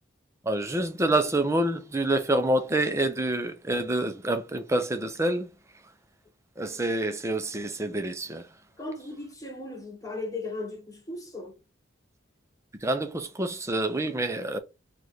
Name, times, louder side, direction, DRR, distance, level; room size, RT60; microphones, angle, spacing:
voice 1, 0.4-5.5 6.6-8.5 12.8-14.6, right 1 dB, 15° right, 0.6 m, -27 dB
voice 2, 8.8-11.5, left 2 dB, 15° left, 1.0 m, -37 dB
3.2 x 2.5 x 4.3 m
head